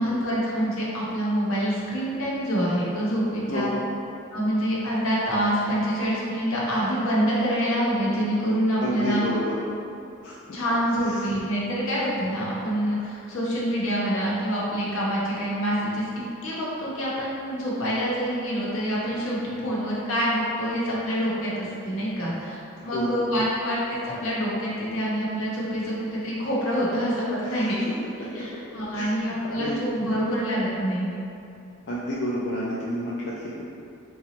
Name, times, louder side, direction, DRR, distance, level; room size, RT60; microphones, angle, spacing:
voice 1, 0.0-3.7 4.3-9.2 10.5-16.0 16.4-22.6 22.8-27.8 28.3-31.1, equal, 80° left, -6 dB, 0.8 m, -26 dB
voice 2, 3.5-3.8 8.8-9.6 10.2-10.4 11.1-11.3 22.8-23.2 27.4-27.7 28.9-29.8 31.9-33.6, left 1 dB, 55° left, -7 dB, 0.3 m, -30 dB
3.8 x 2.3 x 2.9 m, 2.6 s
head